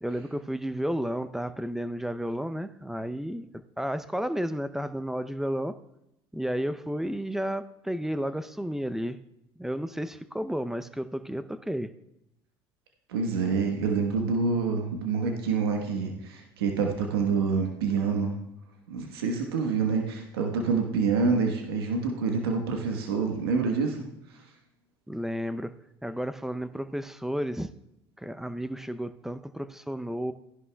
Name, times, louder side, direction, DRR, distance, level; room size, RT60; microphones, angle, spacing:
voice 1, 0.0-3.5 3.8-5.7 6.3-9.2 9.6-11.9 25.1-25.7 26.0-27.7 28.2-30.3, equal, 5° right, 11 dB, 0.6 m, -32 dB
voice 2, 13.1-18.3 18.9-24.0, right 5 dB, 90° right, 2 dB, 1.3 m, -27 dB
15.5 x 11.0 x 2.3 m, 0.85 s
hypercardioid pair, 80°, 12 cm